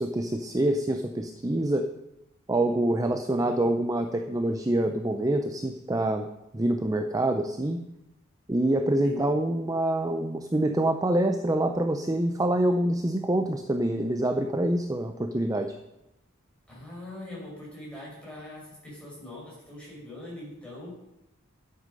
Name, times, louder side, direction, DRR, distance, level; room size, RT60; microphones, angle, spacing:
voice 1, 0.0-1.9 2.5-6.3 6.5-7.8 8.5-15.7, right 1 dB, 15° right, 6 dB, 0.5 m, -26 dB
voice 2, 16.7-20.9, left 1 dB, 5° left, -6 dB, 5.1 m, -42 dB
11.0 x 8.2 x 5.3 m, 0.90 s
head